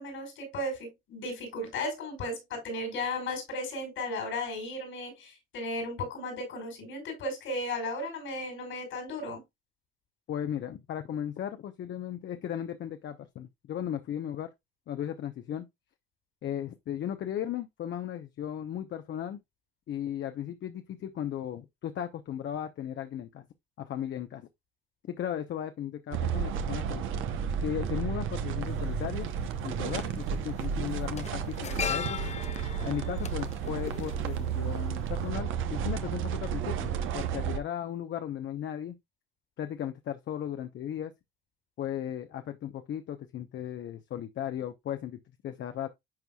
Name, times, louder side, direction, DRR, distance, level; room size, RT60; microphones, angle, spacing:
voice 1, 0.0-9.4, left 1 dB, 85° left, 5.3 m, -35 dB
voice 2, 10.3-14.5 14.9-15.7 16.4-19.4 19.9-23.5 23.8-24.5 25.1-27.0 27.6-29.3 29.6-32.2 32.8-39.0 39.6-41.1 41.8-45.9, left 10 dB, 70° left, 0.9 m, -36 dB
sound 1, 26.1-37.6, right 7 dB, 85° right, 0.9 m, -32 dB
sound 2, 28.7-28.8 30.0-30.2 30.5-34.8 35.1-35.3, left 7 dB, 35° left, 0.5 m, -38 dB
10.5 x 4.6 x 2.3 m
cardioid pair, 90°, 20 cm